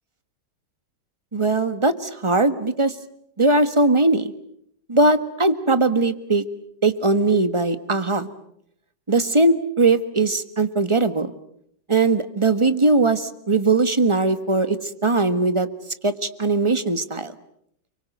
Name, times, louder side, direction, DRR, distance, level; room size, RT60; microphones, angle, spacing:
voice 1, 1.3-2.9 3.4-4.3 4.9-6.4 6.8-8.3 9.1-11.3 11.9-14.8 15.0-15.7 16.0-17.3, right 3 dB, 15° right, 11 dB, 1.2 m, -20 dB
30.0 x 23.5 x 7.9 m, 0.70 s
omnidirectional pair, 2.2 m